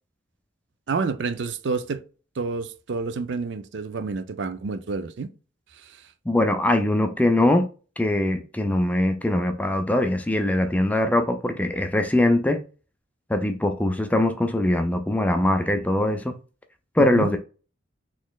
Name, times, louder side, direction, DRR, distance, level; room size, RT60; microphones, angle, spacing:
voice 1, 0.9-2.0 2.4-5.3 5.7-6.0 17.0-17.3, right 4 dB, 65° right, 0.4 m, -29 dB
voice 2, 6.3-7.7 8.0-12.6 13.3-16.4 17.0-17.4, left 1 dB, 10° left, 0.4 m, -22 dB
4.1 x 3.0 x 2.3 m
head